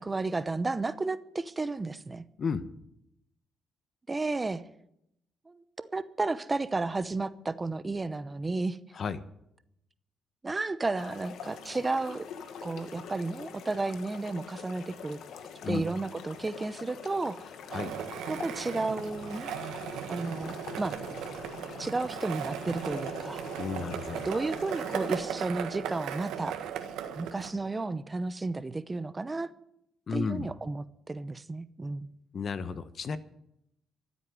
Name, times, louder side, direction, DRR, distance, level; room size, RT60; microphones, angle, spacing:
voice 1, 0.0-2.2 4.1-4.6 5.5-8.8 10.4-12.3 12.6-15.2 15.7-17.5 18.3-19.5 20.1-21.0 21.8-23.5 24.2-26.6 27.2-29.5 30.1-32.1, right 3 dB, 25° right, 14 dB, 0.7 m, -32 dB
sound 1, 10.9-25.3, left 7 dB, 75° left, 1.4 m, -45 dB
Skateboard, 17.7-27.5, right 8 dB, 90° right, 1.6 m, -37 dB
voice 2, 23.6-24.3 30.1-30.5 32.3-33.2, left 5 dB, 50° left, 13 dB, 1.1 m, -33 dB
14.5 x 8.2 x 9.5 m, 0.79 s
cardioid pair, 90°, 0 cm